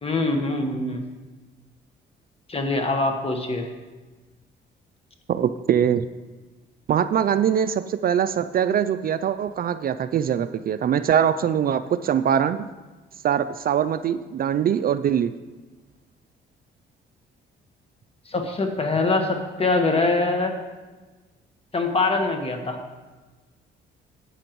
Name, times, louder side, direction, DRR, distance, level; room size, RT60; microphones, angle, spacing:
voice 1, 0.0-1.0 2.5-3.7 18.3-20.5 21.7-22.8, left 3 dB, 30° left, 4 dB, 1.4 m, -23 dB
voice 2, 5.3-6.0 6.9-12.7 13.2-15.3, right 9 dB, 50° right, 11 dB, 0.4 m, -22 dB
13.0 x 8.5 x 3.0 m, 1.2 s
cardioid pair, 90°, 20 cm